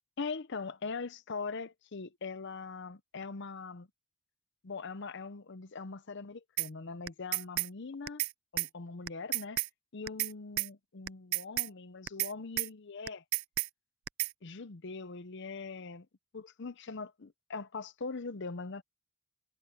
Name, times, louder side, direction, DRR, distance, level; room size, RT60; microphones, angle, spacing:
voice 1, 0.2-3.9 4.6-8.2 8.5-9.6 9.9-13.2 14.4-16.1 16.3-18.8, left 4 dB, 55° left, 0.7 m, -41 dB
sound 1, 6.6-6.7 7.1-7.7 8.1-8.3 8.6-8.7 9.1-9.7 10.1-10.3 10.6-10.7 11.1-11.7 12.1-12.3 12.6-12.7 13.1-13.7 14.1-14.3, right 18 dB, 70° right, 0.4 m, -32 dB
head